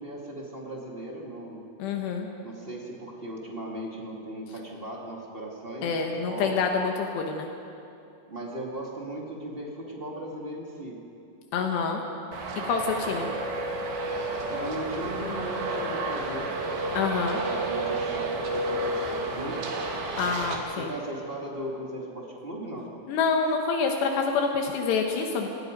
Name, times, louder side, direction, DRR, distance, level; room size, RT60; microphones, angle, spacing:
voice 1, 0.0-1.7 2.4-6.5 8.3-11.0 13.0-13.3 14.5-16.5 17.4-19.7 20.7-22.9, right 1 dB, 20° right, -2 dB, 1.5 m, -37 dB
voice 2, 1.8-2.3 5.8-7.5 11.5-12.0 12.6-13.3 16.9-17.4 20.2-20.9 23.1-25.5, left 5 dB, 75° left, 2 dB, 3.3 m, -27 dB
Traffic noise roadway noise, 12.3-20.6, right 2 dB, 75° right, 4.3 m, -31 dB
28.0 x 19.5 x 5.3 m, 2.7 s
omnidirectional pair, 5.0 m